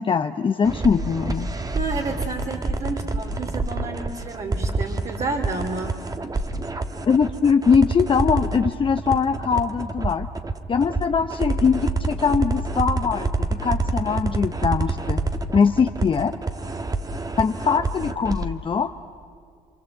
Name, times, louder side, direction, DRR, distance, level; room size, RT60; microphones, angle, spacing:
voice 1, 0.0-1.5 7.1-10.3 10.7-15.2 15.5-16.3 17.4-18.9, left 6 dB, 30° left, 7 dB, 0.8 m, -21 dB
sound 1, 0.6-18.4, right 3 dB, 20° right, 1.4 m, -27 dB
voice 2, 1.7-6.0 6.4-6.5, right 3 dB, 40° right, 0 dB, 2.7 m, -30 dB
27.5 x 25.5 x 7.9 m, 2.2 s
cardioid pair, 110°, 17 cm